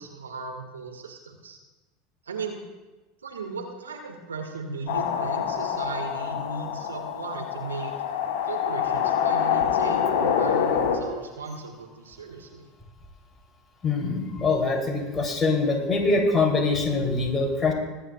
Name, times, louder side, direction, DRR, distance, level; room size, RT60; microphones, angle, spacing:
voice 1, 0.0-1.6 2.2-2.6 3.2-7.9 8.4-12.7, right 4 dB, 85° right, 3 dB, 1.7 m, -37 dB
sound 1, 4.9-11.0, left 8 dB, 65° left, 1.9 m, -26 dB
voice 2, 13.8-17.7, left 3 dB, 20° left, -1 dB, 3.3 m, -24 dB
23.0 x 9.8 x 2.4 m, 1.1 s
hypercardioid pair, 80°, 0 cm